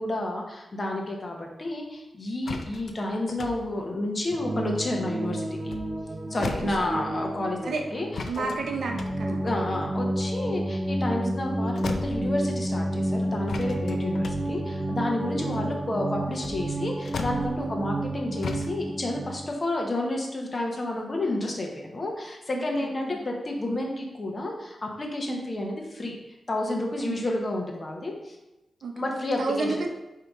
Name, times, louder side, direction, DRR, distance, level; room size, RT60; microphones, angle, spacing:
voice 1, 0.0-5.7 6.3-8.1 8.4-8.5 9.3-26.1 26.5-28.4 29.0-29.8, left 1 dB, 40° left, 1 dB, 0.8 m, -30 dB
sound 1, 2.5-5.1 5.5-7.3 8.1-11.5 11.8-12.8 13.5-18.1 18.4-18.7, left 4 dB, 70° left, 0.4 m, -38 dB
sound 2, 4.3-19.5, right 1 dB, 35° right, 0.4 m, -30 dB
voice 2, 8.2-9.4 11.2-11.4 15.2-15.6 17.6-17.7 22.5-23.2 25.3-25.4 27.0-27.3 28.8-28.9 29.4-29.9, right 4 dB, 85° right, 2 dB, 0.5 m, -32 dB
5.0 x 2.8 x 3.5 m, 0.98 s
wide cardioid pair, 100°, 0 cm